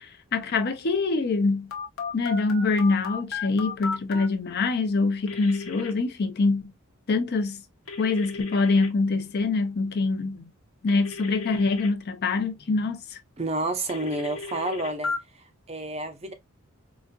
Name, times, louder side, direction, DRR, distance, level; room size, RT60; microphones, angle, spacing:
voice 1, 0.0-1.7 2.1-6.7 7.1-7.6 8.0-10.4 10.8-13.0, left 3 dB, 50° left, 0.5 m, -24 dB
Telephone, 1.7-4.3 5.3-5.9 7.9-8.9 10.9-11.9 13.9-15.2, left 4 dB, 70° left, 0.9 m, -34 dB
voice 2, 13.4-15.1 15.7-16.3, right 2 dB, 30° right, 0.6 m, -29 dB
4.0 x 2.5 x 2.2 m
head